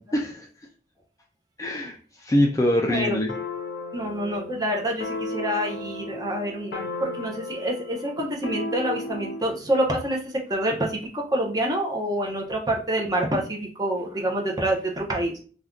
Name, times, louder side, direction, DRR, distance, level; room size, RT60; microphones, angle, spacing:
voice 1, 0.1-0.5 1.6-3.3, left 1 dB, 20° left, 1 dB, 0.3 m, -23 dB
sound 1, 3.3-9.5, left 2 dB, 85° left, 0.5 m, -34 dB
voice 2, 3.9-15.4, right 1 dB, 20° right, 0 dB, 0.6 m, -27 dB
2.5 x 2.3 x 3.5 m, 0.40 s
head